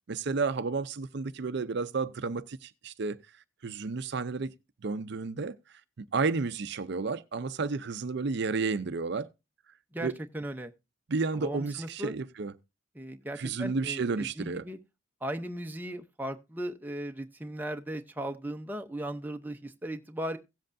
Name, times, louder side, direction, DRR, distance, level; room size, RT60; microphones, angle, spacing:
voice 1, 0.1-3.2 3.6-4.5 4.8-9.3 10.0-10.2 11.1-12.5 13.4-14.6, right 4 dB, 55° right, 0.5 m, -32 dB
voice 2, 10.3-10.7 11.4-12.1 13.0-14.8 15.2-20.4, right 1 dB, 10° right, 0.6 m, -37 dB
17.0 x 7.7 x 2.6 m
head